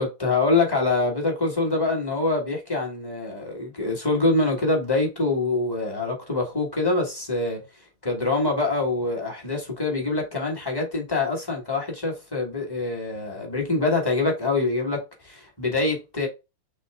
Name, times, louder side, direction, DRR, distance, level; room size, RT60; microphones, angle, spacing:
voice 1, 0.0-7.6 8.0-16.3, left 3 dB, 15° left, 1.0 m, -25 dB
6.6 x 2.3 x 3.4 m
omnidirectional pair, 2.1 m